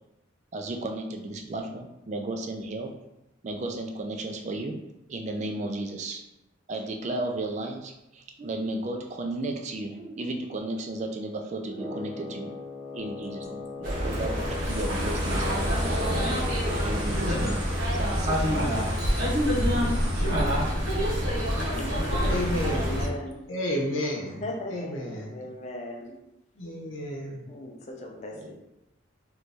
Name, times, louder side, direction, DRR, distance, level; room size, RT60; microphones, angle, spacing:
voice 1, 0.5-3.0 3.4-4.8 5.1-6.2 6.7-12.5 12.9-18.8 22.6-22.9, right 2 dB, 35° right, 3 dB, 0.3 m, -34 dB
Wind instrument woodwind instrument, 11.7-17.4, left 4 dB, 5° right, 0.6 m, -39 dB
sound 1, 13.1-13.2 13.4-14.1 14.3-20.3, right 1 dB, 85° right, 1.0 m, -44 dB
sound 2, 13.8-23.1, equal, 65° right, 1.0 m, -26 dB
voice 2, 21.7-23.4 24.2-26.2 27.5-28.5, left 1 dB, 35° left, 0 dB, 0.5 m, -38 dB
voice 3, 22.3-23.0 23.5-24.4 24.7-25.3 26.6-27.4, left 1 dB, 75° left, -1 dB, 0.8 m, -31 dB
3.1 x 2.6 x 3.3 m, 0.90 s
head